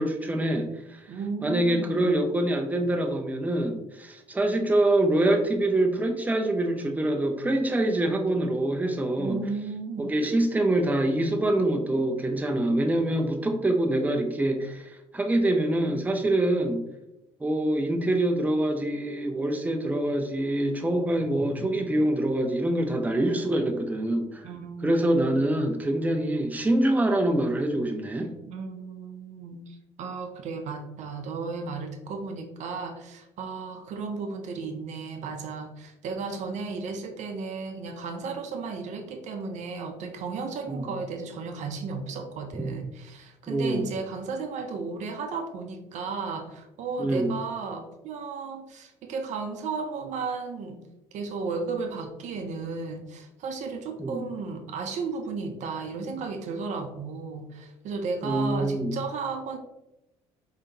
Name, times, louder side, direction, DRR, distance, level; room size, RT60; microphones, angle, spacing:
voice 1, 0.0-1.0 1.4-9.4 10.0-16.8 17.4-24.5 24.8-28.3 40.7-40.9 43.5-43.9 47.0-47.3 54.0-54.2 58.2-58.9, right 1 dB, 10° right, 4 dB, 0.6 m, -25 dB
voice 2, 1.1-2.0 9.2-10.1 24.4-25.4 28.5-50.8 51.1-59.6, right 4 dB, 60° right, 6 dB, 0.6 m, -34 dB
4.8 x 2.8 x 2.7 m, 0.90 s
hypercardioid pair, 60°, 14 cm